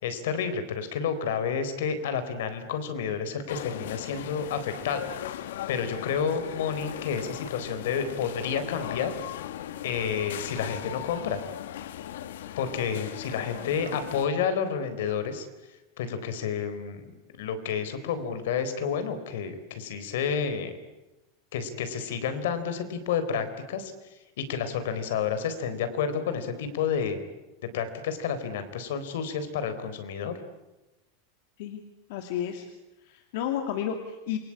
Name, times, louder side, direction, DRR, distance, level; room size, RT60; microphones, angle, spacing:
voice 1, 0.0-5.4 5.7-9.1 9.8-11.4 12.6-15.5 16.0-17.1 17.4-20.7 21.5-23.9 24.4-27.2 27.7-30.3, left 7 dB, 70° left, 10 dB, 4.0 m, -30 dB
sound 1, 3.5-14.3, left 11 dB, 90° left, 1.5 m, -38 dB
voice 2, 32.1-32.7 33.0-34.4, left 9 dB, 55° left, 5 dB, 2.4 m, -31 dB
28.0 x 23.5 x 8.7 m, 1.0 s
supercardioid pair, 175°, 0 cm